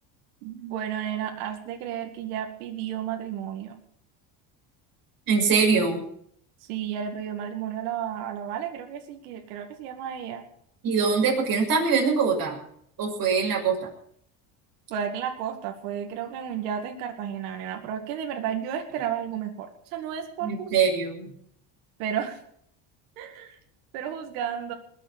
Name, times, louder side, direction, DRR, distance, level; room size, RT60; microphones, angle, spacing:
voice 1, 0.4-3.8 6.7-10.4 14.9-20.8 22.0-22.4 23.2-23.6 23.9-24.7, right 9 dB, 85° right, 4 dB, 2.3 m, -32 dB
voice 2, 5.3-6.0 10.8-12.6 13.0-13.9 20.4-21.3, right 5 dB, 45° right, -1 dB, 6.7 m, -23 dB
20.5 x 7.4 x 8.9 m, 0.67 s
supercardioid pair, 115°, 46 cm